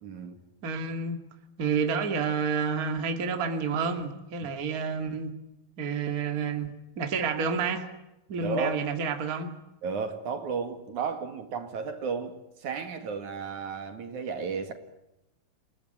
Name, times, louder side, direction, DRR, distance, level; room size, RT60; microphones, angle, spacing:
voice 1, 0.0-0.4 4.4-4.5 8.4-8.8 9.8-14.7, right 5 dB, 60° right, 3.3 m, -33 dB
voice 2, 0.6-1.2 1.6-5.3 5.8-7.9 8.3-9.5, right 5 dB, 30° right, 2.3 m, -29 dB
29.0 x 18.5 x 9.5 m
omnidirectional pair, 4.1 m